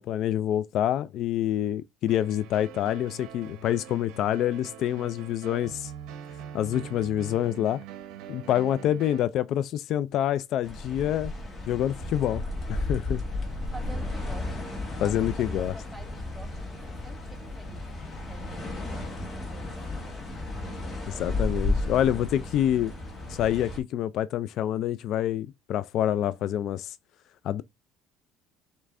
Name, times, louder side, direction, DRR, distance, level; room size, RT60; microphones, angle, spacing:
voice 1, 0.0-5.9 6.5-7.8 8.3-11.3 11.7-12.4 12.7-13.2 15.0-15.7 21.1-22.9 23.3-26.9 27.4-27.6, left 11 dB, 60° left, 0.3 m, -27 dB
sound 1, 2.1-9.2, right 7 dB, 75° right, 0.8 m, -43 dB
sound 2, 10.6-23.8, left 2 dB, 30° left, 1.7 m, -33 dB
voice 2, 13.7-17.2 17.6-17.8 18.2-20.2, right 2 dB, 5° right, 1.0 m, -48 dB
6.5 x 3.2 x 2.5 m
cardioid pair, 115°, 0 cm